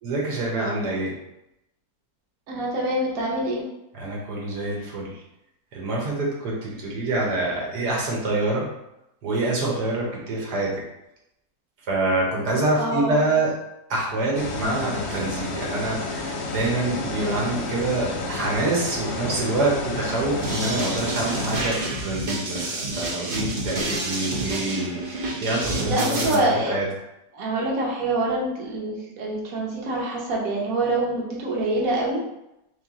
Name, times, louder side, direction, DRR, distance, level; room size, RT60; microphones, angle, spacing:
voice 1, 0.0-1.1 3.9-5.2 5.7-8.7 9.2-10.8 11.9-13.5 13.9-26.9, right 2 dB, 85° right, -3 dB, 1.6 m, -26 dB
voice 2, 2.5-3.6 12.8-13.1 25.8-26.7 27.3-32.2, right 2 dB, 65° right, -3 dB, 1.3 m, -25 dB
sound 1, 14.3-21.5, left 2 dB, 60° left, 0.7 m, -30 dB
sound 2, 20.4-26.3, right 2 dB, 45° right, 0.6 m, -29 dB
3.3 x 3.2 x 3.5 m, 0.87 s
omnidirectional pair, 1.7 m